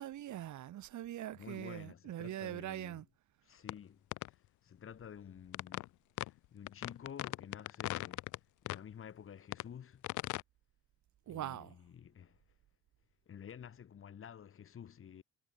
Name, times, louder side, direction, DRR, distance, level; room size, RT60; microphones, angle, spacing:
voice 1, 0.0-3.1 11.3-11.7, right 12 dB, 70° right, 3.9 m, -42 dB
voice 2, 1.3-3.0 3.4-10.1 11.3-12.4 13.3-15.2, left 8 dB, 45° left, 6.8 m, -51 dB
sound 1, 3.7-3.8 4.1-4.3 5.5-5.9 6.2-6.3 6.7-8.4 8.7-8.8 9.5-9.7 10.0-10.4, left 18 dB, 75° left, 0.5 m, -38 dB
cardioid pair, 170°, 31 cm